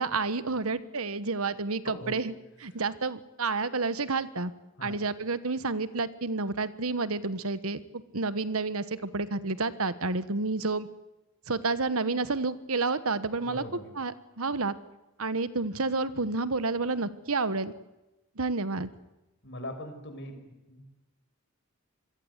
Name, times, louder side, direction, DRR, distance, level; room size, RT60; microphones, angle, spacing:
voice 1, 0.0-2.3 2.6-4.5 4.8-10.9 11.5-13.6 14.0-14.7 15.2-17.7 18.4-18.9, right 3 dB, 70° right, 14 dB, 1.3 m, -30 dB
voice 2, 1.8-2.2 4.8-5.0 13.4-13.8 19.4-20.8, left 1 dB, 50° left, 7 dB, 5.8 m, -41 dB
26.5 x 21.5 x 8.2 m, 1.0 s
head